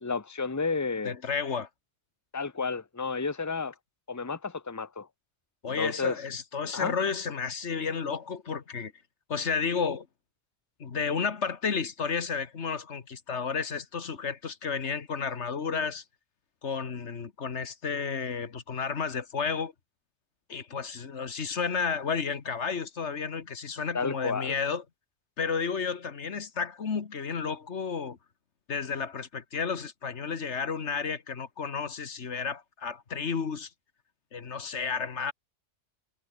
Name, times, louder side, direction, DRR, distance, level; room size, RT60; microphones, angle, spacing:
voice 1, 0.0-1.1 2.3-3.7 4.1-5.1 5.8-6.2 6.7-6.9 23.9-24.5, left 4 dB, 15° left, 1.2 m, -31 dB
voice 2, 1.1-1.7 5.6-8.9 9.3-10.1 10.8-16.0 16.6-19.7 20.5-24.8 25.4-28.2 28.7-33.7 34.3-35.3, left 5 dB, 80° left, 1.8 m, -32 dB
omnidirectional pair, 1.2 m